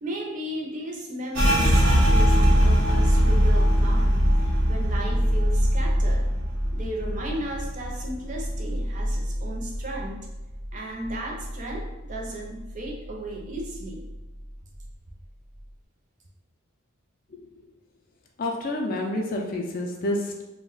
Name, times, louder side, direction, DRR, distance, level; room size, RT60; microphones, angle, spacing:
voice 1, 0.0-6.3 6.7-10.3 10.7-14.1, right 1 dB, 35° right, -1 dB, 0.5 m, -35 dB
sound 1, 1.3-10.8 11.0-12.3 12.6-13.1 13.5-14.1, equal, 75° right, 1.0 m, -22 dB
voice 2, 18.4-20.4, left 1 dB, 40° left, 1 dB, 0.3 m, -28 dB
2.3 x 2.1 x 3.8 m, 1.0 s
head